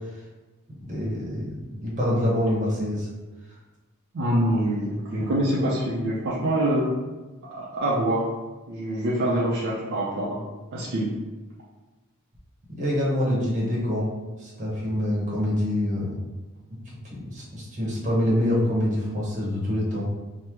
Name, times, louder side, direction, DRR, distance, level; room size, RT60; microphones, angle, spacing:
voice 1, 0.8-3.1 12.7-14.1 14.4-16.2 17.1-20.1, left 1 dB, 35° right, -5 dB, 0.8 m, -26 dB
voice 2, 4.1-6.9 7.5-8.3 8.7-10.4 10.7-11.1, right 1 dB, 60° right, -6 dB, 0.5 m, -25 dB
2.9 x 2.1 x 3.4 m, 1.2 s
head